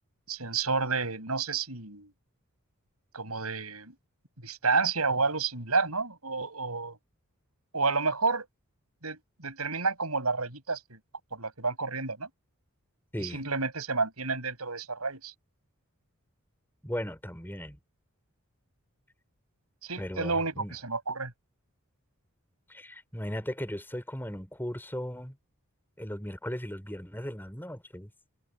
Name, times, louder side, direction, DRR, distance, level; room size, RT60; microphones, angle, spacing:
voice 1, 0.3-2.1 3.1-3.9 4.4-7.0 7.7-8.5 9.0-11.0 11.3-12.3 13.2-15.3 19.8-21.3, right 4 dB, 80° right, 7.4 m, -30 dB
voice 2, 13.1-13.5 16.8-17.8 20.0-20.7 22.7-25.4 26.0-28.1, equal, 10° left, 4.9 m, -37 dB
head